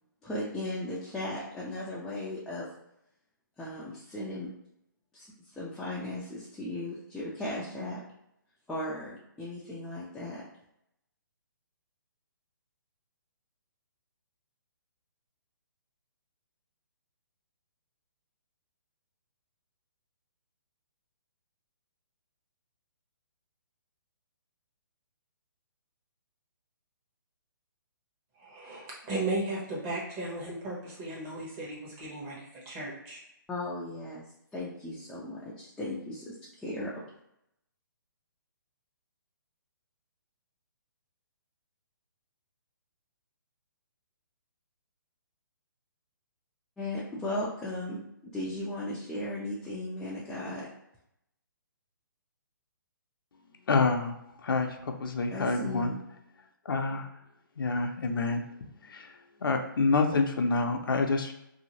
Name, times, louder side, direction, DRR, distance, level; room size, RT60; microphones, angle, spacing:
voice 1, 0.2-2.7 3.6-4.5 5.1-5.3 5.5-8.0 8.7-10.4 33.5-34.2 34.5-37.1 46.8-48.0 48.3-50.7 55.3-56.0, left 1 dB, 5° left, -8 dB, 0.3 m, -36 dB
voice 2, 28.4-33.2, right 2 dB, 25° right, -4 dB, 0.9 m, -36 dB
voice 3, 53.7-54.1 54.4-55.9 56.7-57.1 57.6-58.4 58.8-59.1 59.4-61.3, left 3 dB, 80° left, 4 dB, 0.5 m, -27 dB
2.7 x 2.4 x 2.8 m, 0.81 s
hypercardioid pair, 145°, 11 cm